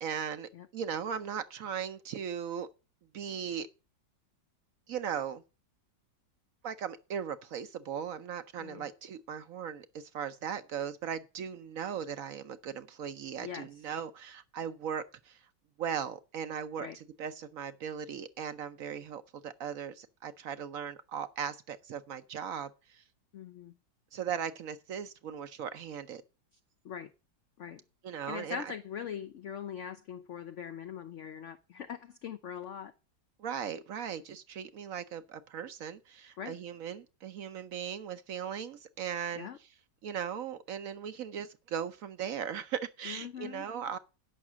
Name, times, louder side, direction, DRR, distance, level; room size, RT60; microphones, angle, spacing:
voice 1, 0.0-2.7 3.1-3.7 4.9-5.4 6.6-15.4 15.8-16.9 17.2-23.0 24.1-26.2 28.0-28.6 33.4-39.5 40.0-44.0, right 8 dB, 65° right, 0.9 m, -38 dB
voice 2, 8.6-8.9 13.4-13.8 16.8-17.0 23.3-23.8 26.8-27.1 27.6-27.8 28.3-32.9 36.4-36.6 39.3-39.6 43.0-43.7, left 8 dB, 80° left, 0.6 m, -42 dB
8.7 x 5.8 x 7.2 m
omnidirectional pair, 2.0 m